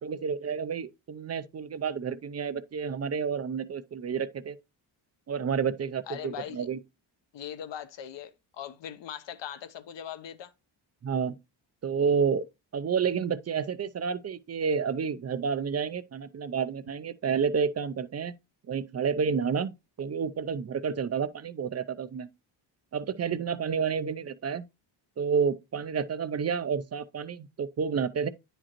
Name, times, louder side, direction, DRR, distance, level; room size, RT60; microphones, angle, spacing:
voice 1, 0.0-4.6 5.3-6.8 11.0-11.4 11.8-12.4 12.7-18.3 18.7-22.3 22.9-24.6 25.2-28.3, right 6 dB, 35° right, 0.5 m, -30 dB
voice 2, 6.1-6.7 7.3-10.5, left 10 dB, 65° left, 0.9 m, -40 dB
9.7 x 5.1 x 2.9 m
cardioid pair, 125°, 47 cm